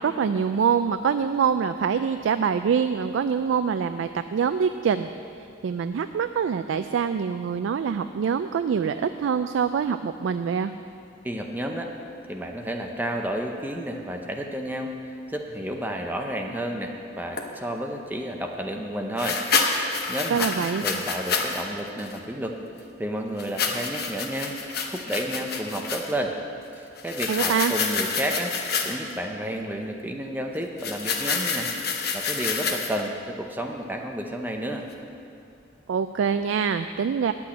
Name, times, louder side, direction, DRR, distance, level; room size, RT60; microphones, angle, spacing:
voice 1, 0.0-5.1 5.6-10.7 20.3-20.8 27.3-27.7 35.9-37.3, right 6 dB, 80° right, 9 dB, 0.3 m, -25 dB
voice 2, 11.2-11.9 12.3-14.9 15.3-19.4 19.7-22.6 23.0-24.5 24.9-26.3 26.8-28.6 28.8-31.7 32.1-34.9, right 1 dB, 10° right, 2 dB, 0.6 m, -31 dB
sound 1, 17.4-17.5 19.2-21.6 22.0-22.2 23.4-26.1 27.0-29.1 30.8-33.1, left 5 dB, 55° left, 0.9 m, -28 dB
10.0 x 6.1 x 8.6 m, 2.5 s
head